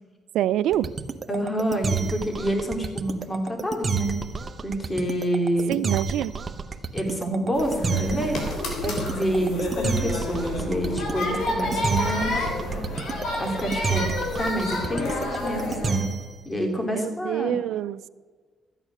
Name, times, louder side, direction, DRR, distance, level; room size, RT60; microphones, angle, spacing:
voice 1, 0.3-0.9 5.7-6.3 16.9-18.1, right 12 dB, 85° right, 18 dB, 0.4 m, -26 dB
sound 1, 0.7-16.4, right 5 dB, 35° right, 0.9 m, -30 dB
voice 2, 1.3-4.1 4.6-5.8 6.9-8.4 8.8-12.3 13.4-14.1 14.4-16.0 16.4-17.6, right 1 dB, 20° left, 3 dB, 2.7 m, -27 dB
sound 2, 7.5-15.9, left 2 dB, 80° left, 3.2 m, -29 dB
13.5 x 9.0 x 6.1 m, 1.4 s
cardioid pair, 90°, 0 cm